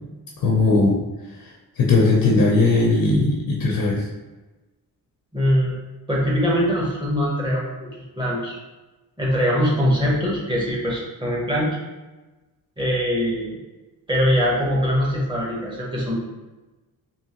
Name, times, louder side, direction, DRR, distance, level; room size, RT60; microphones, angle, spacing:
voice 1, 0.4-1.0 1.8-4.1, left 3 dB, 70° left, -1 dB, 0.6 m, -18 dB
voice 2, 5.3-5.7 6.1-8.6 9.2-11.8 12.8-13.6 14.1-16.2, equal, 15° right, -5 dB, 1.0 m, -22 dB
3.6 x 2.9 x 2.9 m, 1.1 s
wide cardioid pair, 155°, 37 cm